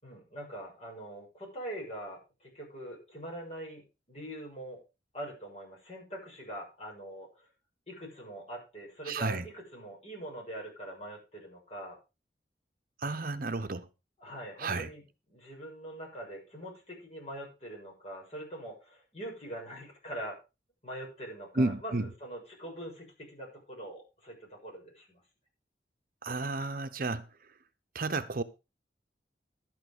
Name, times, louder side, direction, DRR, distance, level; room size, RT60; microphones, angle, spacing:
voice 1, 0.0-4.8 5.1-7.5 7.9-12.0 14.2-15.0 15.3-20.4 20.8-25.2, right 1 dB, 35° left, 6.9 m, -43 dB
voice 2, 9.1-9.4 13.0-13.9 14.6-14.9 21.6-22.1 26.2-27.2 27.9-28.4, right 3 dB, 55° right, 0.8 m, -32 dB
12.0 x 8.8 x 5.0 m
head